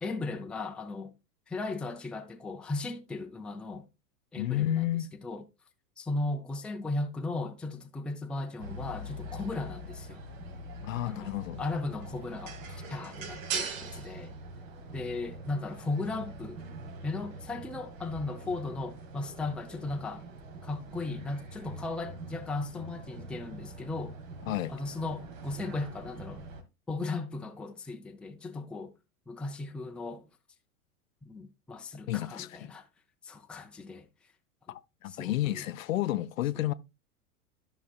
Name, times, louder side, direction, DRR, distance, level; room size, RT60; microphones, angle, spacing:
voice 1, 0.0-1.1 1.5-3.8 4.3-4.8 5.2-5.4 6.0-10.2 11.0-11.3 11.6-14.3 14.9-20.2 20.6-24.2 24.7-26.4 26.9-28.9 29.3-30.3 31.2-32.8 33.2-34.1 35.1-35.6, left 3 dB, ahead, 0.5 m, -36 dB
voice 2, 4.4-5.1 10.8-11.6 24.5-24.7 32.1-32.7 34.7-36.7, left 14 dB, 65° left, 0.6 m, -31 dB
sound 1, 8.6-26.6, right 3 dB, 60° right, 1.4 m, -43 dB
13.0 x 5.8 x 2.3 m
figure-of-eight pair, 90°, 43 cm